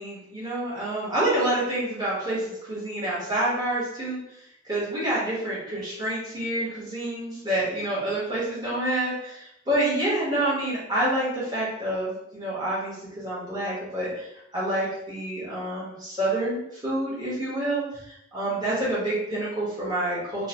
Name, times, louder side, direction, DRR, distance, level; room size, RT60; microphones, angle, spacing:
voice 1, 0.0-4.2 4.6-14.3 14.5-20.5, right 1 dB, 20° right, -8 dB, 0.9 m, -28 dB
2.7 x 2.0 x 2.8 m, 0.80 s
head